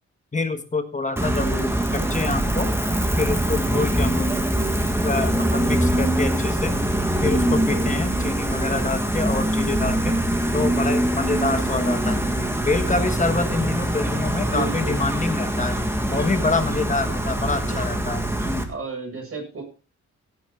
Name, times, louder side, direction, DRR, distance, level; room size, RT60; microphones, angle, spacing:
voice 1, 0.3-2.7 3.2-4.4 5.0-6.8 7.2-10.2 10.5-12.2 12.6-15.8 16.1-18.7, left 3 dB, 25° left, 8 dB, 1.4 m, -26 dB
Gull seagull, 1.2-18.6, right 1 dB, 10° right, 1.8 m, -23 dB
voice 2, 7.5-7.9 12.9-13.1 14.5-15.1 16.0-16.6 17.6-18.1 18.7-19.6, right 4 dB, 50° right, 2 dB, 6.9 m, -34 dB
16.5 x 8.8 x 3.7 m, 0.35 s
wide cardioid pair, 135°, 30 cm